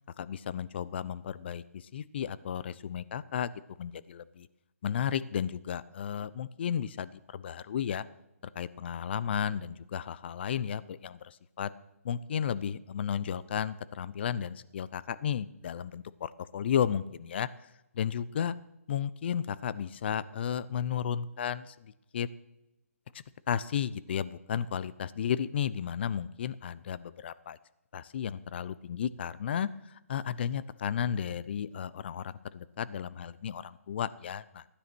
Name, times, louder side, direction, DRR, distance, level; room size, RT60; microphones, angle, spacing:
voice 1, 0.2-4.5 4.8-8.1 8.5-11.7 12.0-18.6 18.9-22.3 23.1-27.6 27.9-34.7, left 8 dB, 45° left, 17 dB, 0.7 m, -34 dB
15.5 x 10.0 x 6.2 m, 0.92 s
hypercardioid pair, 155°, 8 cm